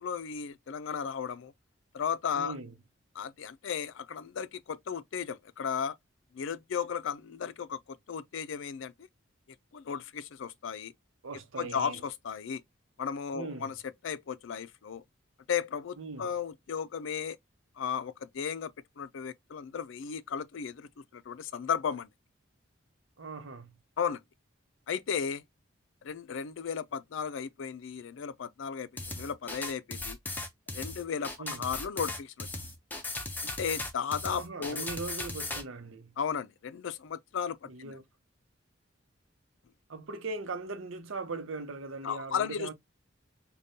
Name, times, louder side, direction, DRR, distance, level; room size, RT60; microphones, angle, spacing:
voice 1, 0.0-1.5 1.9-2.6 3.1-5.9 6.3-8.9 9.7-10.9 11.6-12.6 13.0-15.0 15.5-17.4 17.8-22.1 24.0-24.2 24.9-25.4 26.0-30.2 30.7-31.3 31.6-32.5 33.4-34.9 36.2-38.0 42.0-42.7, left 7 dB, 75° left, 0.4 m, -35 dB
voice 2, 2.3-2.7 11.2-12.0 13.3-13.7 16.0-16.3 23.2-23.8 31.4-31.7 34.3-36.2 37.7-38.0 39.9-42.7, right 3 dB, 85° right, 0.8 m, -40 dB
sound 1, 29.0-35.6, left 2 dB, 10° left, 0.5 m, -37 dB
5.1 x 2.2 x 2.7 m
head